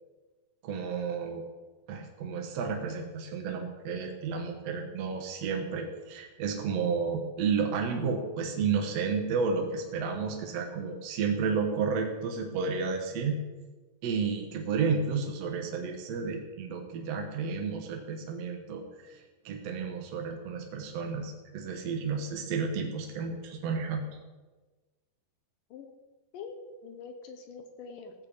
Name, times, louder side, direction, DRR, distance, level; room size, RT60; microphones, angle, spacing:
voice 1, 0.6-1.4 1.9-13.4 14.0-19.2 19.4-24.0, right 5 dB, 60° right, 3 dB, 1.7 m, -32 dB
voice 2, 26.3-28.1, left 5 dB, 70° left, 6 dB, 2.4 m, -44 dB
15.0 x 5.9 x 8.3 m, 1.3 s
omnidirectional pair, 4.5 m